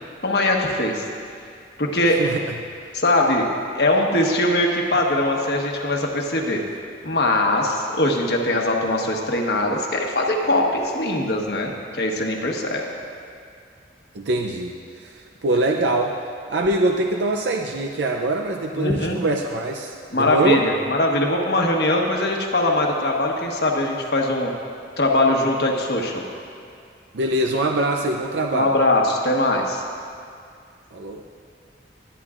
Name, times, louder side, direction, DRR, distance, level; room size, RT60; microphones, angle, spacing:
voice 1, 0.2-1.0 1.8-2.2 2.9-3.5 3.7-6.6 7.0-12.8 18.7-19.2 20.1-24.5 25.0-26.2 28.5-29.8, left 1 dB, 65° left, 1 dB, 1.2 m, -21 dB
voice 2, 2.1-2.5 14.1-16.2 16.5-20.6 27.1-28.7 30.9-31.2, right 2 dB, 80° right, 2 dB, 0.5 m, -23 dB
21.5 x 9.1 x 2.5 m, 2.3 s
head